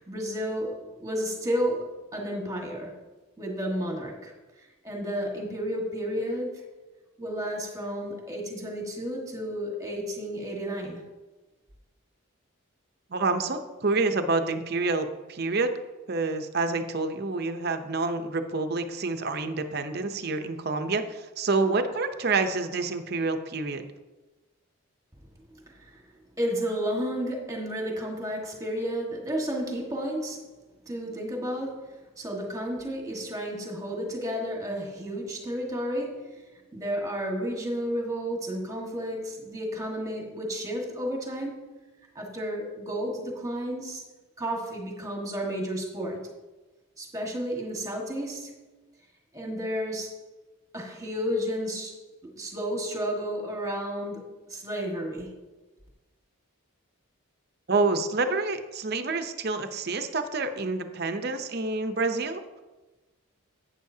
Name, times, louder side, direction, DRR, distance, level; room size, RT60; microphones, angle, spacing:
voice 1, 0.0-2.9 3.4-4.3 4.8-6.6 7.2-11.0 25.5-26.0 26.4-30.4 30.9-36.4 36.7-41.7 42.1-44.0 44.4-46.2 47.0-48.5 49.3-50.2 50.7-55.3, equal, 15° right, 0 dB, 1.6 m, -32 dB
voice 2, 13.1-15.7 16.1-23.8 57.7-62.4, right 3 dB, 50° right, 8 dB, 0.7 m, -28 dB
11.5 x 9.0 x 2.8 m, 1.2 s
head